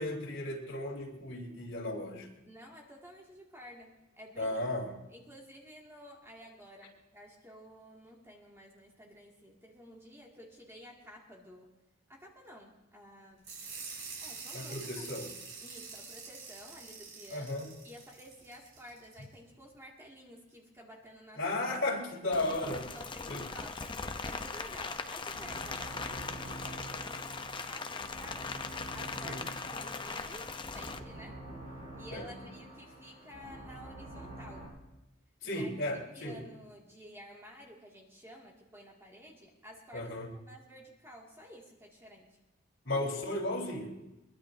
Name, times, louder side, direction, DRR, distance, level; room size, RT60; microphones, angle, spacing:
voice 1, 0.0-2.3 4.4-4.9 14.5-15.3 17.3-17.7 21.3-22.9 23.3-23.5 29.2-29.4 32.1-32.4 35.4-36.4 39.9-40.3 42.8-44.0, left 1 dB, 70° left, -3 dB, 3.7 m, -35 dB
voice 2, 2.5-4.6 5.1-11.7 12.1-13.5 14.2-14.8 15.6-17.6 17.8-21.4 22.7-28.6 28.9-31.4 32.0-34.7 35.4-35.7 36.1-40.1 40.5-42.4, equal, 15° right, -2 dB, 2.3 m, -52 dB
sound 1, 13.4-19.2, right 5 dB, 70° right, 6.2 m, -46 dB
Rain, 22.3-31.0, left 4 dB, 25° left, 0.7 m, -40 dB
sound 2, 24.7-34.7, right 1 dB, 40° right, 5.9 m, -47 dB
22.5 x 21.5 x 2.7 m, 1.0 s
head